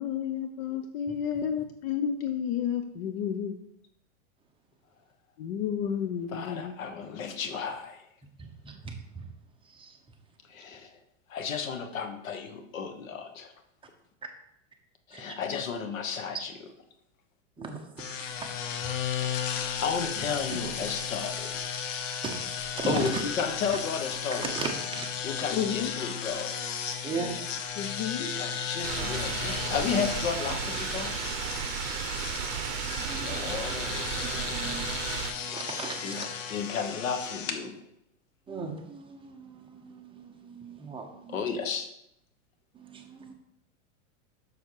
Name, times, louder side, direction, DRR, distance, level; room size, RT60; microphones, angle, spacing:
voice 1, 0.0-3.6 5.4-6.7 25.5-25.9 27.8-28.3, left 8 dB, 50° left, 8 dB, 0.8 m, -31 dB
voice 2, 6.3-8.0 10.5-10.9 11.3-13.5 15.1-16.5 19.8-21.6 22.9-24.5 25.2-26.5 28.2-31.1 33.2-34.1 36.0-36.2 36.5-37.8 41.3-41.9, left 6 dB, 90° left, 7 dB, 1.4 m, -33 dB
voice 3, 8.4-9.3 9.6-10.0 15.1-15.4 17.6-19.7 20.2-20.6 22.2-23.2 23.7-23.8 24.3-25.5 27.0-28.0 32.0-33.5 34.2-36.3 38.5-41.4 42.7-43.3, right 4 dB, 15° right, 2 dB, 1.0 m, -39 dB
sound 1, 18.0-37.6, left 7 dB, 70° left, 1.2 m, -35 dB
sound 2, 28.8-35.3, right 11 dB, 60° right, 0.8 m, -34 dB
7.1 x 6.6 x 4.8 m, 0.80 s
supercardioid pair, 140°, 39 cm